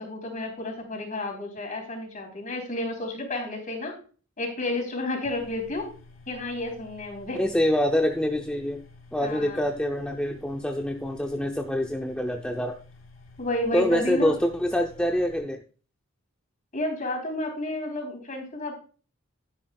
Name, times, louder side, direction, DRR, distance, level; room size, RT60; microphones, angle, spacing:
voice 1, 0.0-3.9 4.4-5.9 6.3-7.4 9.2-9.7 13.4-14.3 16.7-18.8, left 2 dB, 40° left, 2 dB, 3.5 m, -31 dB
sound 1, 5.2-15.4, left 3 dB, 70° left, 3.0 m, -51 dB
voice 2, 7.3-8.8 9.1-12.8 13.7-15.6, equal, 5° left, 2 dB, 0.6 m, -25 dB
11.0 x 10.0 x 2.3 m, 0.39 s
head